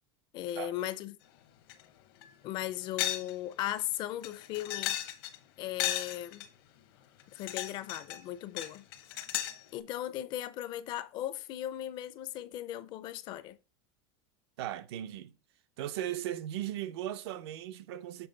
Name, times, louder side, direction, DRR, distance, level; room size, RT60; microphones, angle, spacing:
voice 1, 0.3-1.2 2.4-5.0 5.6-6.5 7.3-8.9 9.7-13.6, left 13 dB, 35° left, 0.4 m, -37 dB
sound 1, 1.7-1.8 2.2-2.3 3.0-3.3 3.6-3.7 4.2-5.4 5.8-6.5 7.2-8.2 8.6-9.6, left 13 dB, 65° left, 0.8 m, -34 dB
voice 2, 14.6-15.3 15.8-18.3, right 12 dB, 75° right, 0.6 m, -37 dB
6.9 x 3.8 x 3.8 m
supercardioid pair, 165°, 13 cm